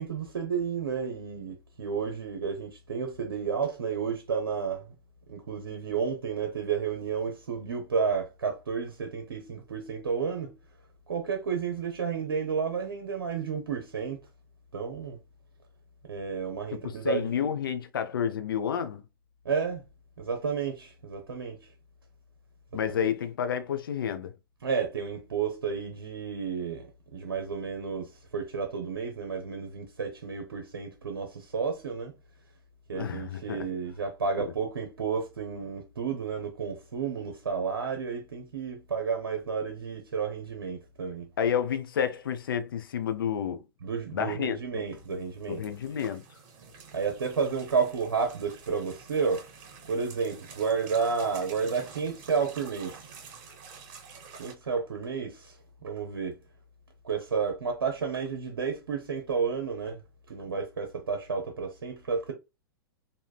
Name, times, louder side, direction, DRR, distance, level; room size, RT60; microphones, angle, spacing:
voice 1, 0.0-4.9 5.3-10.5 11.1-14.2 14.7-15.2 16.1-17.3 19.4-19.8 20.2-21.6 22.9-23.1 24.6-32.1 32.9-41.3 43.8-45.6 46.9-49.4 49.9-53.1 54.4-56.4 57.0-60.0 60.3-62.3, right 5 dB, 80° right, 0.7 m, -31 dB
voice 2, 16.7-19.0 22.7-24.3 32.9-33.7 34.4-34.5 41.4-43.6 44.1-44.8 45.5-46.2, left 8 dB, 75° left, 0.5 m, -30 dB
sound 1, 44.9-54.5, right 6 dB, 50° right, 1.4 m, -49 dB
3.4 x 2.6 x 2.3 m
hypercardioid pair, 105°, 12 cm